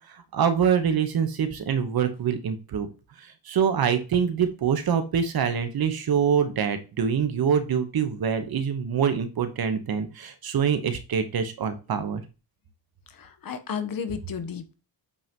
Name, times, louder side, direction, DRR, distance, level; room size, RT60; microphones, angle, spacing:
voice 1, 0.1-2.9 3.2-12.2, right 7 dB, 55° right, 8 dB, 1.3 m, -25 dB
voice 2, 13.2-14.7, left 7 dB, 50° left, 9 dB, 1.1 m, -33 dB
8.5 x 5.7 x 3.1 m, 0.31 s
cardioid pair, 130°, 45 cm